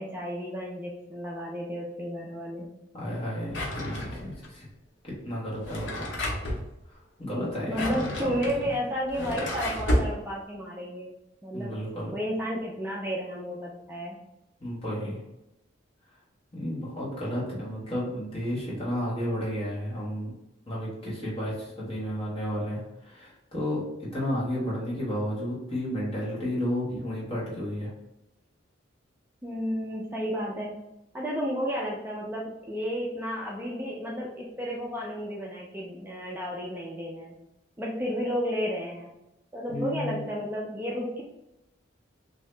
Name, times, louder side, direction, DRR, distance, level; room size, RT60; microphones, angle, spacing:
voice 1, 0.0-2.7 7.6-11.1 11.4-11.8 12.1-14.2 29.4-30.8 31.1-37.4 37.8-39.1 39.5-41.2, equal, 10° right, -4 dB, 0.4 m, -32 dB
voice 2, 2.9-4.7 5.0-6.1 6.9-8.3 8.6-8.7 11.5-12.1 14.6-15.2 16.5-20.3 20.7-27.9 39.7-40.2, equal, 30° left, -6 dB, 1.3 m, -32 dB
Drawer open or close, 3.5-4.5 5.5-6.6 7.5-10.1, left 1 dB, 70° left, 0.8 m, -31 dB
2.8 x 2.7 x 3.2 m, 0.89 s
head